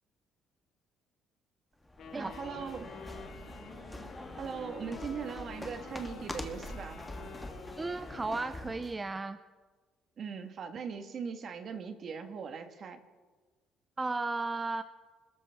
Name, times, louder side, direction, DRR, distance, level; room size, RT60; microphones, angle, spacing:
sound 1, 1.8-9.0, left 1 dB, 10° left, 1.4 m, -44 dB
Wind instrument woodwind instrument, 2.0-8.9, left 6 dB, 60° left, 2.2 m, -49 dB
voice 1, 2.1-2.9 4.4-7.1 10.2-13.0, right 6 dB, 45° right, 7 dB, 1.5 m, -40 dB
voice 2, 7.8-9.4 14.0-14.8, right 3 dB, 15° right, 11 dB, 0.5 m, -34 dB
25.5 x 13.5 x 3.5 m, 1.4 s
cardioid pair, 135°, 0 cm